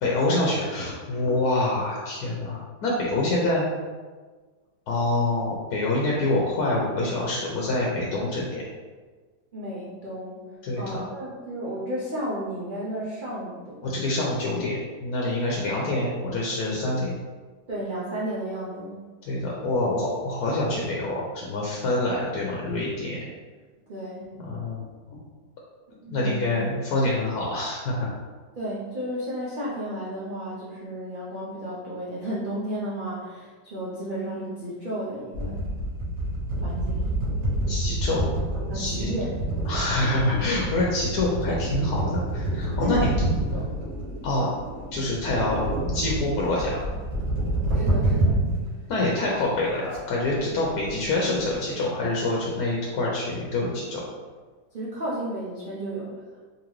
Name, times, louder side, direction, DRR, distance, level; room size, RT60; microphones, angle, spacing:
voice 1, 0.0-3.6 4.9-8.6 10.6-11.0 13.8-17.2 19.3-23.2 24.4-25.2 26.1-28.1 37.7-38.2 38.7-39.1 39.6-43.1 44.2-44.5 44.9-45.6 45.9-46.8 48.9-54.0, left 2 dB, 70° left, -4 dB, 1.1 m, -26 dB
voice 2, 9.5-13.8 17.7-19.0 23.9-24.3 26.0-26.5 28.6-35.7 36.6-37.1 38.7-39.4 42.8-43.2 43.5-43.7 47.7-48.5 54.7-56.1, equal, 80° right, -7 dB, 0.4 m, -33 dB
sound 1, 35.3-48.6 49.0-49.1 49.4-49.5 49.9-50.0 50.2-51.5, right 1 dB, 50° right, 1.5 m, -28 dB
3.8 x 2.9 x 3.1 m, 1.4 s
omnidirectional pair, 1.8 m